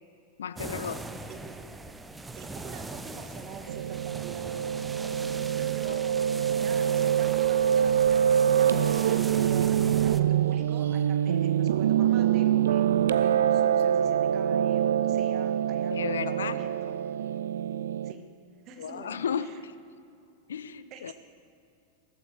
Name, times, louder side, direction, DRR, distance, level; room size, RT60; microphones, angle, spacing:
voice 1, 0.4-1.0 5.8-6.0 15.9-16.6 18.8-19.7 20.5-21.1, left 7 dB, 65° left, 14 dB, 0.4 m, -34 dB
sound 1, 0.6-10.2, right 2 dB, 10° right, 0.6 m, -41 dB
voice 2, 2.3-4.5 5.6-12.8 13.1-16.9 18.0-18.3 18.6-19.6 20.9-21.1, right 6 dB, 35° right, 5 dB, 1.5 m, -46 dB
Piano, 3.7-18.1, right 9 dB, 65° right, 0.3 m, -25 dB
18.0 x 14.5 x 3.2 m, 2.5 s
figure-of-eight pair, 90°, 0 cm